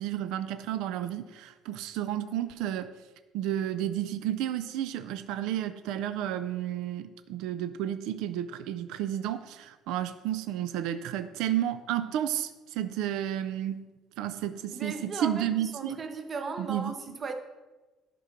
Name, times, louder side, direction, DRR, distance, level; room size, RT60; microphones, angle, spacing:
voice 1, 0.0-2.9 3.3-13.9 14.2-16.0 16.6-16.9, right 11 dB, 80° right, 0.4 m, -32 dB
voice 2, 14.7-15.4 15.7-17.3, right 4 dB, 25° right, 0.7 m, -36 dB
11.0 x 3.8 x 5.8 m
cardioid pair, 175°, 0 cm